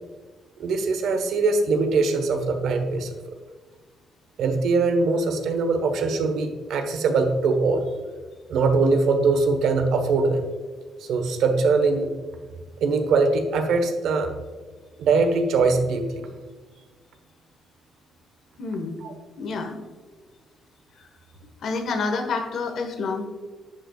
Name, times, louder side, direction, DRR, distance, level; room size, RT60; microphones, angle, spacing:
voice 1, 0.6-3.1 4.4-7.9 8.5-10.4 11.1-12.1 12.8-14.3 15.0-16.3 19.0-19.1, right 4 dB, 80° right, 7 dB, 1.2 m, -22 dB
voice 2, 18.6-19.0 19.4-19.8 21.0-21.1 21.6-23.3, left 4 dB, 65° left, 5 dB, 1.4 m, -28 dB
11.0 x 8.0 x 2.4 m, 1.4 s
cardioid pair, 90°, 0 cm